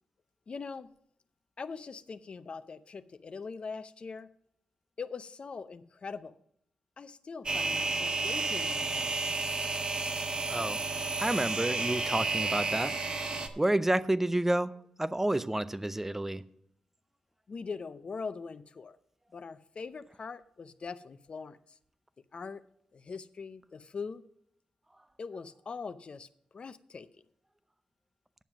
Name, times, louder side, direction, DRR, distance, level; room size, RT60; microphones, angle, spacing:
voice 1, 0.5-0.9 1.6-4.3 5.0-6.4 7.0-9.2 17.5-19.0 19.3-21.6 22.3-22.6 22.9-24.2 25.2-26.3 26.5-27.1, left 5 dB, 50° left, 0.6 m, -42 dB
sound 1, 7.5-13.5, right 3 dB, 45° right, 1.2 m, -31 dB
voice 2, 10.5-10.8 11.2-12.9 13.6-14.7 15.0-16.4, right 1 dB, 15° right, 0.6 m, -29 dB
9.3 x 7.1 x 6.0 m
cardioid pair, 70°, 2 cm